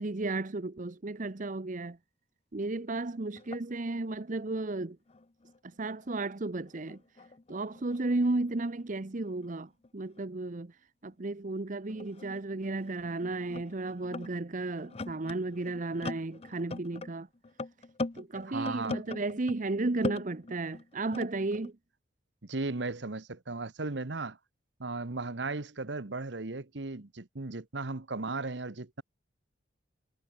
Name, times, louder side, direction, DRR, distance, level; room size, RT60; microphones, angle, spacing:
voice 1, 0.0-2.0 2.5-5.0 5.8-7.0 7.5-10.7 11.0-17.3 18.2-21.7, right 2 dB, 40° right, 0.8 m, -33 dB
sound 1, 2.9-3.0 3.3-6.2 6.4-10.2 11.1-11.2 11.9-19.7 20.0-21.7, left 2 dB, 35° left, 0.6 m, -42 dB
voice 2, 18.5-19.0 22.4-24.4 24.8-29.0, right 3 dB, 65° right, 1.2 m, -36 dB
head